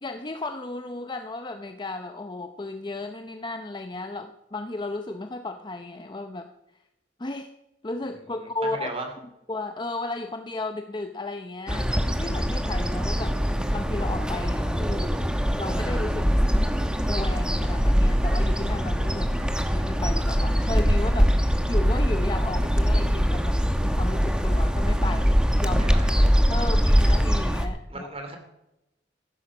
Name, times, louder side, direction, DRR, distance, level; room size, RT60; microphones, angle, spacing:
voice 1, 0.0-6.5 7.2-7.5 7.8-8.9 9.5-15.1 15.6-16.4 17.1-19.4 19.7-26.0 26.5-28.1, left 2 dB, 25° left, 7 dB, 0.7 m, -34 dB
voice 2, 8.6-9.1 25.8-26.5 27.9-28.4, right 2 dB, 35° right, 5 dB, 2.9 m, -36 dB
sound 1, 11.7-27.7, equal, 5° right, 1.0 m, -23 dB
15.0 x 11.0 x 6.1 m, 0.89 s
head